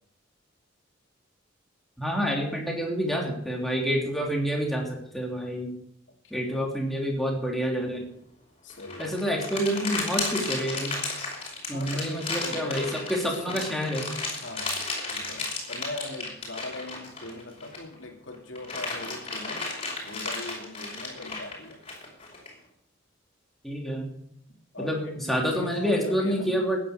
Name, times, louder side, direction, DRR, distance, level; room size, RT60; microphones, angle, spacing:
voice 1, 2.0-5.7 6.3-8.1 9.0-10.9 11.7-14.0 23.6-24.1 24.8-26.8, equal, ahead, -1 dB, 3.3 m, -28 dB
voice 2, 6.2-6.6 8.6-9.1 11.7-13.7 14.3-19.7 20.0-21.8 24.5-26.6, left 2 dB, 70° left, 2 dB, 2.9 m, -40 dB
sound 1, 8.7-17.9 18.3-22.5, left 3 dB, 30° left, 5.3 m, -34 dB
15.0 x 10.5 x 7.1 m, 0.73 s
head